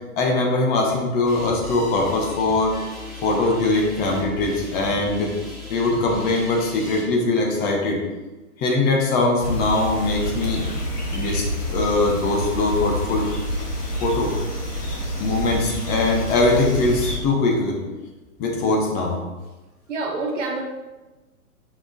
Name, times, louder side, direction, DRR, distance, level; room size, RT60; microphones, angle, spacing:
voice 1, 0.2-2.8 3.2-5.3 5.7-8.0 8.6-10.8 11.1-13.2 14.0-14.3 15.2-17.8 18.4-19.2, left 2 dB, 20° left, 0 dB, 0.9 m, -21 dB
sound 1, 1.3-7.0, left 1 dB, ahead, 1.3 m, -38 dB
sound 2, 9.4-17.2, equal, 85° left, 1.6 m, -28 dB
voice 2, 19.9-20.6, right 3 dB, 55° right, 0 dB, 1.4 m, -27 dB
6.1 x 4.7 x 3.8 m, 1.1 s
figure-of-eight pair, 115°, 46 cm